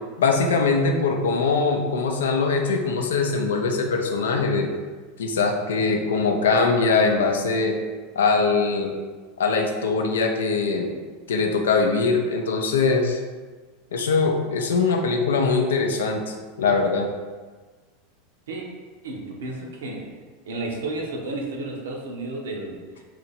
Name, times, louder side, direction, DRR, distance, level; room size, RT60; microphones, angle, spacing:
voice 1, 0.2-4.7 5.2-7.8 8.2-8.9 9.4-10.9 11.3-13.2 13.9-17.1, left 4 dB, 70° left, 3 dB, 0.4 m, -22 dB
voice 2, 19.0-20.1 20.4-23.0, right 2 dB, 70° right, 0 dB, 0.6 m, -32 dB
2.9 x 2.5 x 4.1 m, 1.4 s
figure-of-eight pair, 85°, 0 cm